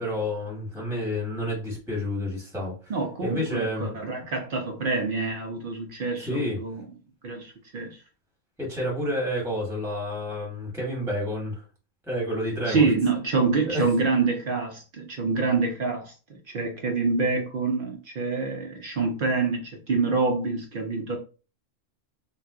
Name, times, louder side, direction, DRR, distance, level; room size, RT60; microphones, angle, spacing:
voice 1, 0.0-2.9 3.2-3.8 6.2-6.6 8.6-11.6 12.1-12.9 13.6-13.9, left 1 dB, ahead, 1.0 m, -29 dB
voice 2, 2.9-6.8 7.2-8.0 12.7-16.1 16.5-21.2, right 4 dB, 60° right, 0.6 m, -26 dB
2.6 x 2.2 x 3.5 m
omnidirectional pair, 1.3 m